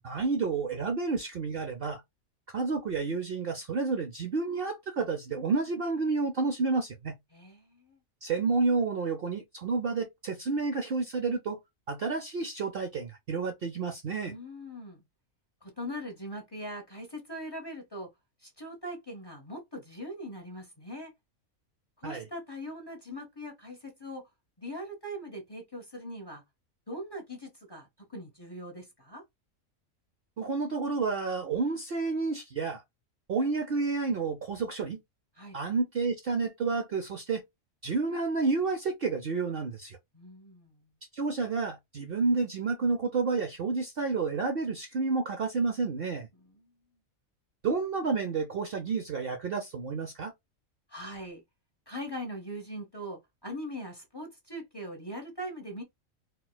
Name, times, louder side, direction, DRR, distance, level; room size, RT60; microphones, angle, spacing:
voice 1, 0.0-2.0 2.5-7.2 8.2-11.6 11.9-14.3 22.0-22.3 30.4-32.8 33.3-35.0 35.5-37.4 37.8-40.0 41.1-46.3 47.6-50.3, right 4 dB, 55° right, 0.7 m, -30 dB
voice 2, 7.3-8.0 14.3-15.0 15.6-18.1 18.4-21.1 22.0-24.3 24.6-26.4 26.9-29.2 35.4-35.6 40.1-40.9 46.4-46.7 50.9-51.4 51.9-55.8, equal, 20° left, 0.8 m, -41 dB
4.4 x 2.2 x 2.2 m
omnidirectional pair, 1.4 m